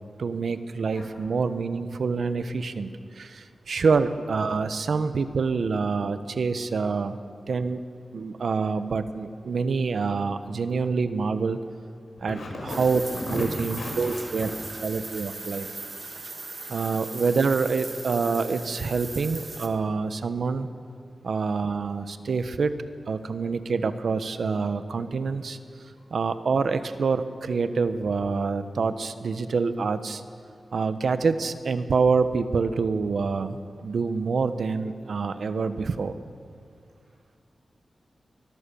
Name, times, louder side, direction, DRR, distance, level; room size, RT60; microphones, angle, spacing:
voice 1, 0.2-2.9 3.1-7.2 7.5-7.8 8.1-11.6 12.2-12.4 12.8-13.0 13.3-14.5 14.8-15.8 16.7-20.7 21.2-22.7 23.1-25.6 26.1-30.2 30.7-36.1, right 4 dB, 65° right, 11 dB, 1.1 m, -26 dB
voice 2, 12.3-12.8 13.1-13.5 13.8-14.5 16.8-17.0 26.0-26.1, left 2 dB, 85° left, -1 dB, 7.0 m, -35 dB
sound 1, 12.7-19.7, right 3 dB, 35° right, 2.0 m, -39 dB
24.5 x 21.5 x 7.0 m, 2.2 s
wide cardioid pair, 160°, 0 cm